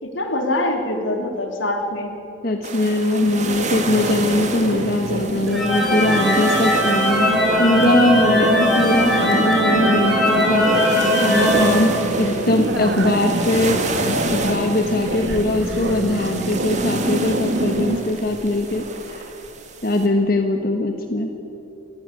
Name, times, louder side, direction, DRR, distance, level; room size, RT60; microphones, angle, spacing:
voice 1, 0.0-2.1, left 1 dB, 85° left, 3 dB, 3.3 m, -24 dB
voice 2, 2.4-19.2 19.8-21.3, left 1 dB, 50° left, 4 dB, 1.4 m, -21 dB
sound 1, 2.6-20.1, right 3 dB, 40° right, 2.2 m, -31 dB
sound 2, 3.2-18.0, right 1 dB, 65° right, 2.1 m, -25 dB
sound 3, 5.5-12.5, equal, ahead, 5.9 m, -20 dB
28.0 x 15.0 x 9.9 m, 2.9 s
head